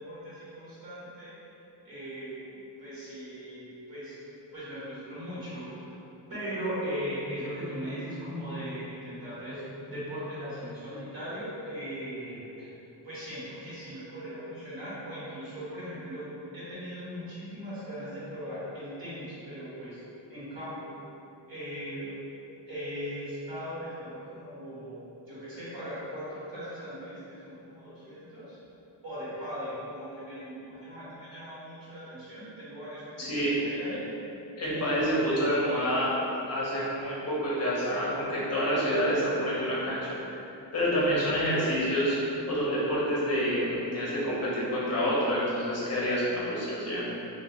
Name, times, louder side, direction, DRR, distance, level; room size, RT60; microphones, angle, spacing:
voice 1, 0.0-1.4 1.8-4.2 4.5-5.9 6.3-12.7 13.0-16.3 16.5-20.0 20.3-21.0 21.5-22.3 22.7-25.0 25.3-28.6 29.0-34.0 34.7-35.0 40.9-41.2, equal, 50° right, -11 dB, 1.4 m, -39 dB
voice 2, 33.2-33.6 34.6-36.1 36.4-40.4 40.7-47.0, equal, 35° left, -7 dB, 0.7 m, -28 dB
2.9 x 2.8 x 2.8 m, 2.9 s
wide cardioid pair, 145°, 44 cm